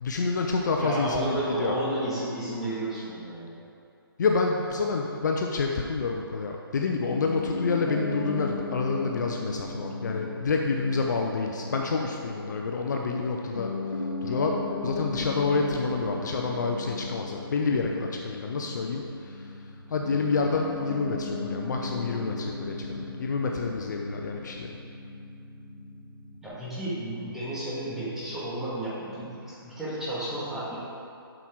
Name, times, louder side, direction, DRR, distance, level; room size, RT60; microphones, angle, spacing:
voice 1, 0.0-1.7 4.2-13.7 14.2-14.6 14.8-19.4 19.9-24.7, left 4 dB, 50° left, 1 dB, 0.7 m, -28 dB
voice 2, 0.8-3.5 26.4-30.8, right 1 dB, 5° right, -11 dB, 1.9 m, -32 dB
Piano, 7.1-26.5, left 2 dB, 80° left, 1.7 m, -36 dB
7.8 x 6.0 x 4.7 m, 2.6 s
figure-of-eight pair, 150°, 13 cm